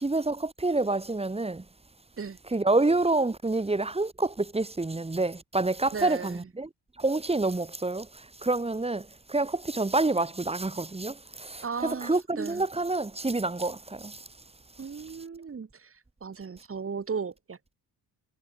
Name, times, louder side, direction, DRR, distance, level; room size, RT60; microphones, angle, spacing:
voice 1, 0.0-1.6 2.5-6.7 7.0-14.3, right 2 dB, 15° right, 4.6 m, -28 dB
voice 2, 5.9-6.5 11.6-12.6 14.8-17.7, right 5 dB, 30° right, 7.8 m, -36 dB
cardioid pair, 120°, 42 cm